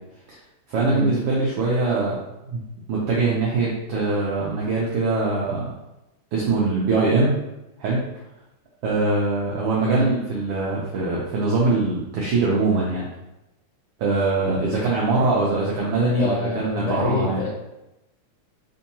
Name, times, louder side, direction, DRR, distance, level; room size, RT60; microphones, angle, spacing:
voice 1, 0.7-2.2 2.5-2.6 2.9-5.7 6.3-7.3 7.8-8.0 8.8-13.1 14.0-17.4, right 3 dB, 80° right, -5 dB, 1.3 m, -22 dB
voice 2, 9.8-10.1 16.0-17.5, left 2 dB, 85° left, -6 dB, 1.1 m, -26 dB
4.4 x 2.7 x 2.7 m, 0.93 s
omnidirectional pair, 3.3 m